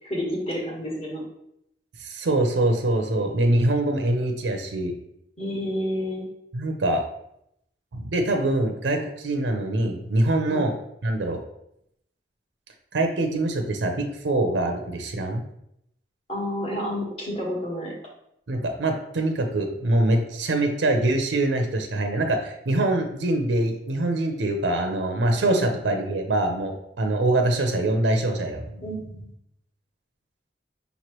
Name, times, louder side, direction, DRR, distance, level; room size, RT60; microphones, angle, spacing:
voice 1, 0.0-1.2 5.4-6.2 10.5-10.6 16.3-17.9 25.4-25.7 28.8-29.0, equal, 35° left, -3 dB, 1.3 m, -29 dB
voice 2, 2.0-4.9 6.5-7.0 7.9-10.7 11.0-11.4 12.9-15.4 18.5-28.8, right 2 dB, 75° right, 4 dB, 0.6 m, -24 dB
5.4 x 3.0 x 2.9 m, 0.77 s
head